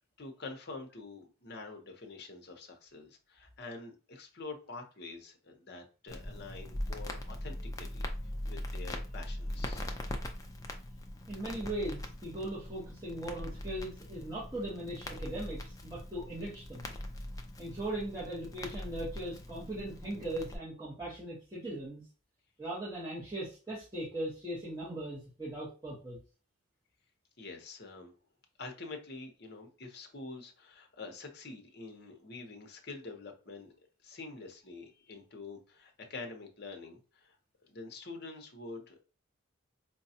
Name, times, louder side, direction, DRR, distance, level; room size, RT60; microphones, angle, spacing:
voice 1, 0.2-8.1 8.5-9.9 27.4-28.1 28.6-37.4 37.6-39.0, left 3 dB, 50° left, 4 dB, 0.8 m, -46 dB
Crackle, 6.1-20.6, left 1 dB, 15° left, 0.4 m, -41 dB
voice 2, 11.3-16.9 17.6-22.0 22.6-26.2, right 1 dB, 15° right, -8 dB, 1.0 m, -39 dB
4.7 x 2.2 x 2.7 m, 0.36 s
head